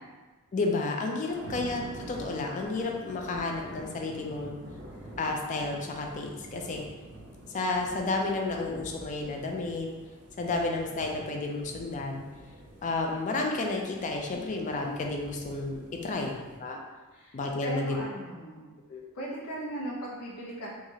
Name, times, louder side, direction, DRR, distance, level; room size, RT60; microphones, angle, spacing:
voice 1, 0.5-1.8 2.1-4.6 5.2-6.8 7.5-9.9 10.4-12.2 12.8-16.8 17.3-18.1 18.9-19.1, left 3 dB, 35° left, 1 dB, 0.3 m, -31 dB
voice 2, 1.3-1.6 4.9-5.1 16.0-16.4 17.1-18.7 19.1-20.7, right 1 dB, 90° left, -3 dB, 0.7 m, -39 dB
sound 1, 1.3-16.6, right 1 dB, 50° right, 0.5 m, -47 dB
3.0 x 2.4 x 2.7 m, 1.3 s
head